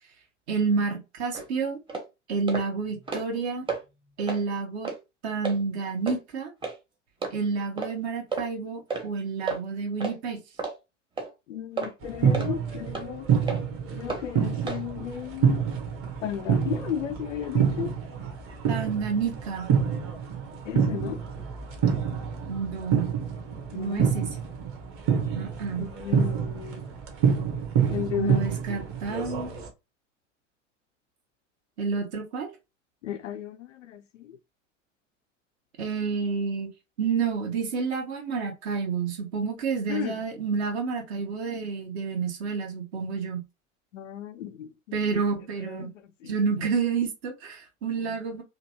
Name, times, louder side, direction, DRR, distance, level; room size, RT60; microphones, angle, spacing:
voice 1, 0.5-1.8 2.3-3.7 4.2-4.9 5.2-6.5 7.3-10.4 18.7-19.7 22.5-23.1 23.7-24.3 25.3-25.9 28.2-29.5 31.8-32.5 35.8-36.7 37.0-43.4 44.9-45.9 46.2-48.4, right 5 dB, 60° right, 1.2 m, -29 dB
sound 1, 1.3-1.5 1.9-2.1 2.5-2.7 3.0-3.4 3.7-3.8 4.2-4.4 4.8-5.0 5.4-5.6 6.1-6.2 6.6-6.8 7.2-7.3 7.8-7.9 8.3-8.5 8.9-9.1 9.5-9.6 10.0-10.2 10.6-10.8 11.2-11.3 11.8-11.9 12.3-12.5 12.9-13.1 13.5-13.6 14.1-14.2 14.7-14.8, right 4 dB, 15° right, 0.8 m, -31 dB
voice 2, 11.5-13.3 13.9-15.6 16.2-17.9 20.7-21.2 23.7-24.1 25.8-26.9 27.9-28.4 33.0-34.4 39.9-40.1 43.9-44.7 45.7-45.9 46.2-46.3, left 9 dB, 75° left, 0.5 m, -34 dB
sound 2, 12.0-29.7, right 7 dB, 35° right, 1.0 m, -27 dB
2.8 x 2.7 x 2.8 m
figure-of-eight pair, 75°, 37 cm